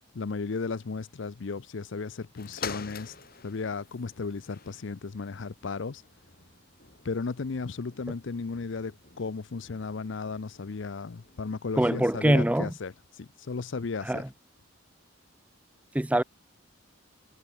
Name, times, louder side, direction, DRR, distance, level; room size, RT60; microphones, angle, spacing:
voice 1, 0.1-3.2 3.4-6.0 7.0-14.3, left 4 dB, 60° left, 0.6 m, -35 dB
sound 1, 2.3-11.9 12.6-12.7, left 5 dB, 45° left, 3.8 m, -47 dB
voice 2, 11.8-12.7 14.1-14.2 15.9-16.2, right 1 dB, 5° right, 0.4 m, -23 dB
head